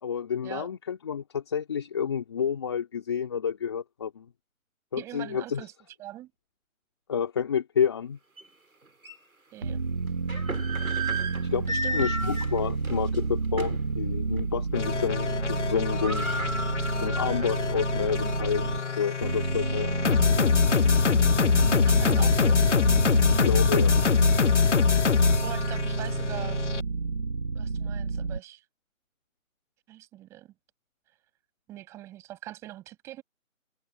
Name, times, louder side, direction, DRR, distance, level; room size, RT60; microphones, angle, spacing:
voice 1, 0.0-4.3 4.9-5.6 7.1-8.2 11.5-11.7 11.9-16.3 17.0-20.0 23.3-24.1, left 7 dB, 20° left, 2.5 m, -29 dB
voice 2, 5.0-5.7 6.0-6.3 9.5-9.8 11.7-12.0 21.9-22.6 25.4-26.6 27.5-28.6 29.9-30.5 31.7-33.2, right 14 dB, 5° right, 7.5 m, -42 dB
sound 1, 8.4-8.5 9.0-9.2 10.1-13.9 14.3-14.5 14.8-15.3 15.5-15.6 15.8-17.8 18.2-18.3 18.9-20.2, right 1 dB, 80° right, 6.9 m, -34 dB
sound 2, 9.6-18.8 19.2-28.4, right 4 dB, 40° right, 1.8 m, -30 dB
sound 3, 14.7-26.8, left 5 dB, 55° left, 0.8 m, -24 dB
figure-of-eight pair, 170°, 42 cm